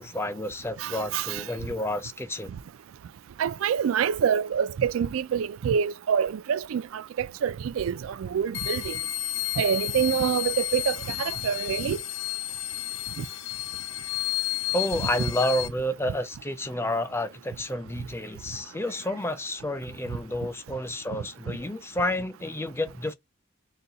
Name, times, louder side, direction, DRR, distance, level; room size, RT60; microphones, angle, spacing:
voice 1, 0.0-2.5 14.7-23.1, left 1 dB, 10° left, 0.5 m, -30 dB
voice 2, 0.8-1.4 3.4-9.0 9.6-12.0 13.2-13.3, right 7 dB, 85° right, 0.3 m, -26 dB
sound 1, 8.5-15.7, left 16 dB, 65° left, 0.6 m, -32 dB
4.1 x 2.3 x 3.9 m
head